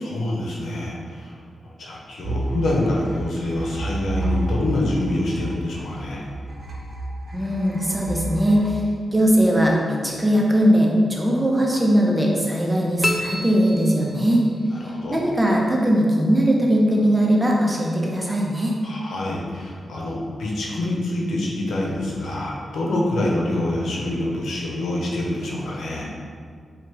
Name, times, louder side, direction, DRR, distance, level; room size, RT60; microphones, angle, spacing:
voice 1, 0.0-1.3 1.8-6.2 14.8-15.2 18.8-26.0, left 1 dB, 80° left, -3 dB, 0.8 m, -26 dB
sound 1, 2.2-9.7, right 1 dB, 45° right, 1.1 m, -31 dB
voice 2, 7.3-8.8 9.1-14.5 15.1-18.7, equal, 15° right, -2 dB, 0.9 m, -19 dB
sound 2, 13.0-14.6, left 2 dB, 25° left, 0.5 m, -28 dB
4.4 x 2.5 x 4.8 m, 2.1 s
cardioid pair, 55°, 0 cm